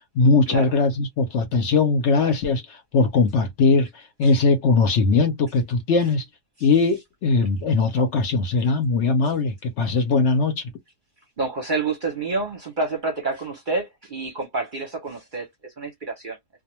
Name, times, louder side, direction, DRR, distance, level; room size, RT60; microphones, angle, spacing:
voice 1, 0.1-6.2 6.6-10.7, left 4 dB, 60° left, 0.8 m, -20 dB
voice 2, 11.4-16.4, right 3 dB, 45° right, 0.7 m, -28 dB
2.3 x 2.2 x 2.9 m
omnidirectional pair, 1.5 m